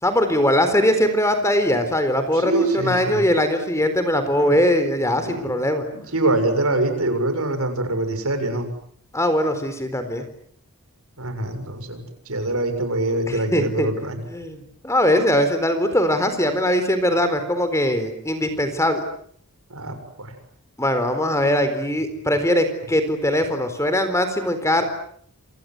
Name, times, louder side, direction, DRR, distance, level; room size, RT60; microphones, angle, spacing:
voice 1, 0.0-5.9 9.1-10.2 13.3-13.9 14.3-19.0 20.8-24.8, left 1 dB, 15° left, 9 dB, 4.1 m, -21 dB
voice 2, 2.3-3.2 4.4-4.6 5.2-5.6 5.9-8.7 11.2-14.2 19.7-20.3, right 2 dB, 75° right, 7 dB, 7.0 m, -24 dB
28.5 x 26.5 x 7.9 m, 0.64 s
head